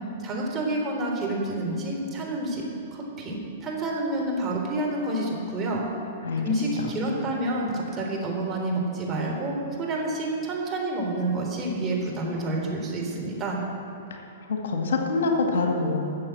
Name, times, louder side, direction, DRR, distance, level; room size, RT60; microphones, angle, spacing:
voice 1, 0.2-5.8 6.4-13.6, right 1 dB, 20° right, -2 dB, 3.5 m, -29 dB
voice 2, 14.5-15.9, left 3 dB, 65° left, 1 dB, 1.9 m, -25 dB
13.5 x 7.6 x 7.8 m, 2.7 s
figure-of-eight pair, 110°, 0 cm